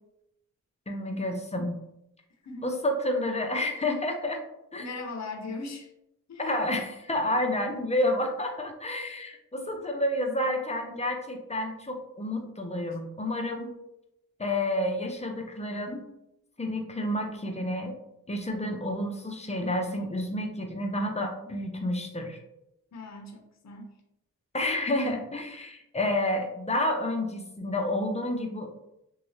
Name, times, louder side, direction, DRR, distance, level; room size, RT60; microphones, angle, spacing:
voice 1, 0.9-1.8 2.6-4.4 4.7-4.9 6.4-13.7 14.4-16.0 16.6-18.0 18.3-22.4 24.5-28.7, left 1 dB, 20° left, 3 dB, 0.6 m, -30 dB
voice 2, 4.8-5.9 6.3-6.7 22.9-23.9, left 3 dB, 55° left, 3 dB, 0.7 m, -39 dB
3.1 x 2.6 x 3.1 m, 0.84 s
cardioid pair, 65°, 32 cm